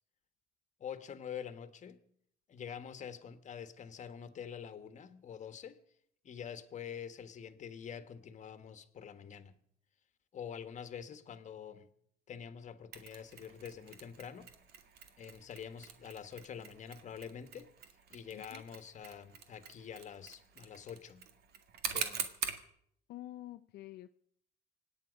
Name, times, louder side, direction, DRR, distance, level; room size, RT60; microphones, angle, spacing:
voice 1, 0.8-2.0 2.5-5.8 6.2-9.6 10.3-11.9 12.3-14.5 15.2-17.7 18.1-21.3 21.9-22.3, left 8 dB, 45° left, 1.4 m, -46 dB
Mechanisms, 12.9-22.7, right 8 dB, 70° right, 1.8 m, -45 dB
voice 2, 18.3-18.6 23.1-24.1, left 14 dB, 75° left, 0.5 m, -48 dB
25.5 x 9.2 x 5.2 m
cardioid pair, 110°, 17 cm